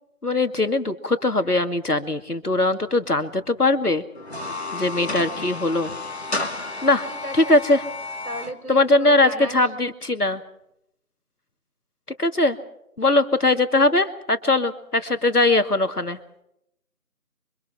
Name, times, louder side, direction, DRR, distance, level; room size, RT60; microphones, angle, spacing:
voice 1, 0.2-4.0 4.7-5.9 6.8-7.1 7.3-7.8 8.7-10.4 12.2-12.6 13.0-16.2, left 2 dB, 85° left, 9 dB, 2.4 m, -20 dB
sound 1, 4.2-8.5, left 3 dB, 45° left, 2.5 m, -32 dB
voice 2, 7.1-7.6 8.2-9.7, right 1 dB, 75° right, 8 dB, 5.9 m, -35 dB
30.0 x 25.0 x 4.5 m, 0.79 s
figure-of-eight pair, 170°, 45 cm